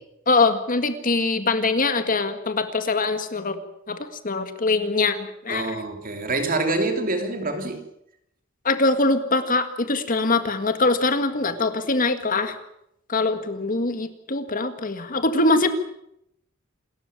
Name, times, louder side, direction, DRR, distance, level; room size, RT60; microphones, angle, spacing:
voice 1, 0.3-3.6 3.9-5.8 8.7-12.6 13.1-15.7, left 3 dB, 45° left, 9 dB, 1.9 m, -23 dB
voice 2, 5.5-7.8, right 2 dB, 45° right, 6 dB, 3.1 m, -26 dB
28.0 x 13.5 x 8.9 m, 0.79 s
head